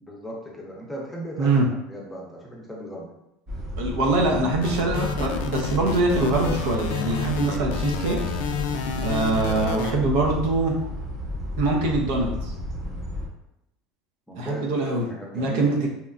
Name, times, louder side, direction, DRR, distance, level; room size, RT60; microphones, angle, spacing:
voice 1, 0.0-1.5 1.9-3.1 14.3-15.7, equal, 5° left, -3 dB, 0.6 m, -37 dB
sound 1, 3.5-13.3, left 1 dB, 35° right, 0.7 m, -32 dB
voice 2, 3.8-8.2 9.0-10.7 11.6-12.5 14.4-15.1 15.3-15.9, right 2 dB, 75° right, 0 dB, 0.6 m, -23 dB
sound 2, 4.6-9.9, left 7 dB, 80° left, 0.3 m, -30 dB
2.8 x 2.2 x 2.4 m, 0.85 s
supercardioid pair, 120°, 0 cm